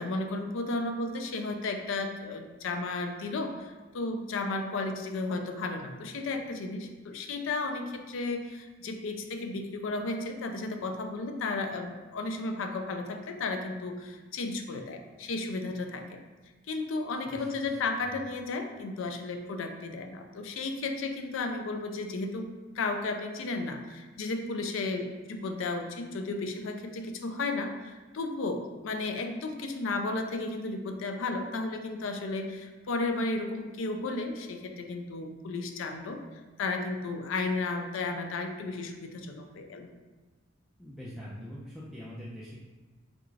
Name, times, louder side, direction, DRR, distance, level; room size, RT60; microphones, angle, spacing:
voice 1, 0.0-16.2 16.7-22.5 22.7-36.2 36.6-39.9, left 3 dB, 70° left, 5 dB, 0.4 m, -33 dB
voice 2, 17.3-18.2 40.8-42.6, equal, ahead, -8 dB, 0.4 m, -44 dB
3.5 x 2.4 x 3.1 m, 1.2 s
head